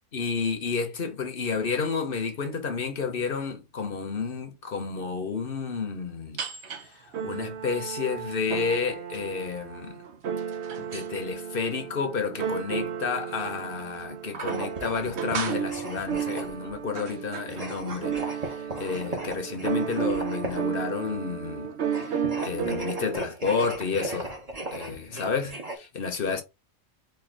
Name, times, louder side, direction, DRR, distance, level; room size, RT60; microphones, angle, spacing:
voice 1, 0.1-6.4 6.8-10.0 10.9-24.4 24.7-26.4, left 5 dB, 50° left, 1.0 m, -31 dB
sound 1, 6.4-6.8 7.1-23.2, right 7 dB, 65° right, 1.1 m, -33 dB
sound 2, 14.4-16.7 17.5-20.8 21.8-25.7, right 2 dB, 30° right, 1.2 m, -37 dB
4.4 x 2.8 x 3.8 m
omnidirectional pair, 1.3 m